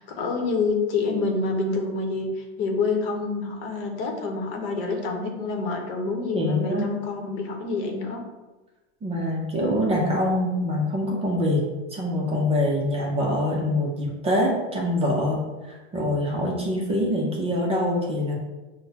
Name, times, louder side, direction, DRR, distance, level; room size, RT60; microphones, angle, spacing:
voice 1, 0.0-8.2, left 3 dB, 55° left, 2 dB, 0.9 m, -27 dB
voice 2, 6.3-6.9 9.0-11.7 11.9-15.4 15.7-18.3, left 1 dB, 15° right, -2 dB, 0.5 m, -24 dB
6.3 x 2.1 x 2.8 m, 1.2 s
supercardioid pair, 125°, 35 cm